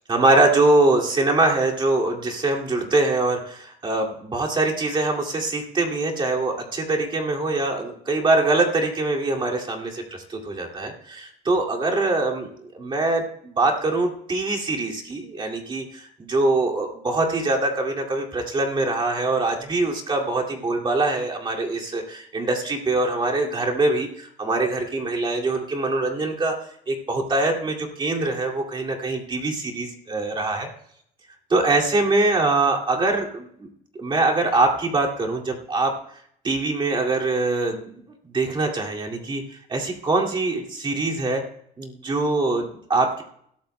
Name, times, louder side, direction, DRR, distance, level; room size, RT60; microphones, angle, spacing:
voice 1, 0.1-12.5 12.7-26.6 26.9-30.7 31.5-33.7 34.0-35.9 36.4-37.9 38.3-39.4 39.7-41.4 41.8-43.2, right 2 dB, 30° right, -1 dB, 2.3 m, -23 dB
20.5 x 13.0 x 2.2 m, 0.68 s
cardioid pair, 110°, 17 cm